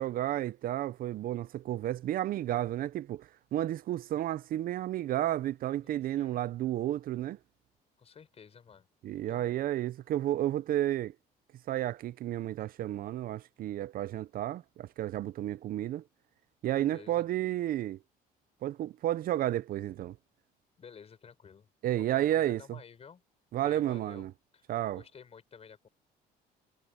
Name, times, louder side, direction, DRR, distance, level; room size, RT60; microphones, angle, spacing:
voice 1, 0.0-7.4 9.0-11.1 11.7-16.0 16.6-18.0 18.6-20.2 21.8-22.8 23.5-24.3 24.7-25.0, right 13 dB, 60° right, 0.5 m, -32 dB
voice 2, 5.8-6.4 8.0-8.9 9.3-9.6 16.8-17.2 20.8-21.7 22.1-23.2 23.6-24.3 24.5-24.7 24.9-25.9, left 6 dB, 35° left, 5.1 m, -52 dB
cardioid pair, 110°, 17 cm